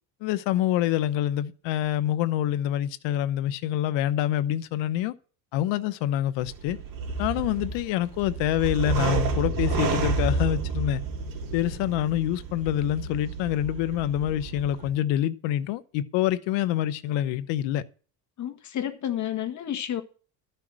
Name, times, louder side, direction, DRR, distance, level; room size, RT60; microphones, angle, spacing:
voice 1, 0.2-5.2 5.5-6.8 7.2-11.0 11.5-17.8, left 12 dB, 70° left, 1.1 m, -26 dB
sound 1, 6.4-14.9, right 4 dB, 45° right, 3.4 m, -30 dB
voice 2, 18.4-20.0, left 10 dB, 40° left, 1.7 m, -30 dB
13.0 x 5.8 x 7.6 m
cardioid pair, 130°, 45 cm